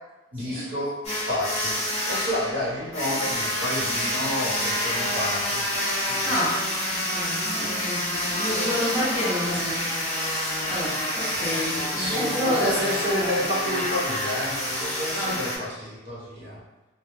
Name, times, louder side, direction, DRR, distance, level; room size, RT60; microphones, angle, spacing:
voice 1, 0.3-0.9 1.3-5.7 6.1-6.2 11.1-11.2 11.7-12.2 12.4-16.6, equal, 65° right, -8 dB, 1.0 m, -30 dB
sound 1, 1.0-15.6, left 1 dB, 30° left, 0.6 m, -28 dB
voice 2, 6.2-6.6 6.9-12.8 13.1-13.4 15.1-15.4, left 1 dB, 10° right, -10 dB, 0.6 m, -30 dB
2.2 x 2.1 x 3.0 m, 1.1 s
head